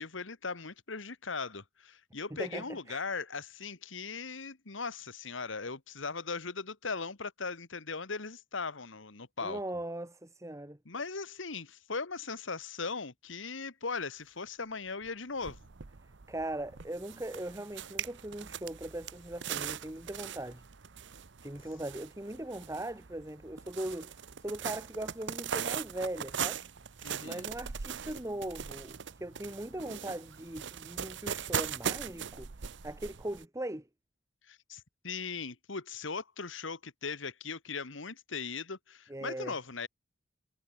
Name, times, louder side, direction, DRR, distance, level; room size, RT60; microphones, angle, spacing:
voice 1, 0.0-9.6 10.8-15.6 27.0-27.4 34.5-39.9, left 4 dB, 70° left, 1.7 m, -39 dB
voice 2, 2.4-3.0 9.4-10.8 16.3-20.6 21.4-26.6 27.2-32.5 32.8-33.9 39.1-39.5, right 1 dB, 15° right, 1.6 m, -39 dB
sound 1, 15.0-15.1 15.4-33.4, right 7 dB, 65° right, 0.9 m, -40 dB
head